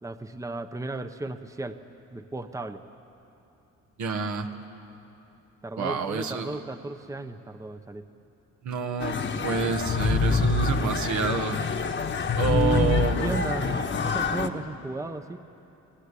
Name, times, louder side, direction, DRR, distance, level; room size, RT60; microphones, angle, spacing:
voice 1, 0.0-1.8 2.1-2.8 5.6-8.1 12.5-15.4, right 3 dB, 10° right, 9 dB, 0.9 m, -34 dB
voice 2, 4.0-4.5 5.8-6.6 8.6-11.6 12.4-13.5, right 5 dB, 70° right, 5 dB, 1.7 m, -28 dB
sound 1, 9.0-14.5, left 4 dB, 40° left, 1.3 m, -26 dB
28.0 x 18.5 x 8.4 m, 2.9 s
cardioid pair, 90°, 30 cm